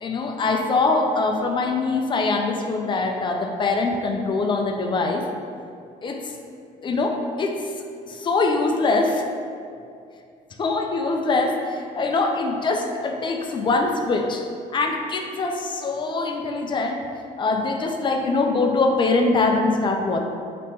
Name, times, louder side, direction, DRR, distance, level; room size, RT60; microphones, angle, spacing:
voice 1, 0.0-5.3 6.0-6.3 6.8-7.7 8.1-9.2 10.6-14.4 14.7-17.0 17.4-20.2, left 3 dB, 30° left, 3 dB, 0.3 m, -23 dB
2.9 x 2.9 x 3.4 m, 2.4 s
cardioid pair, 110°, 17 cm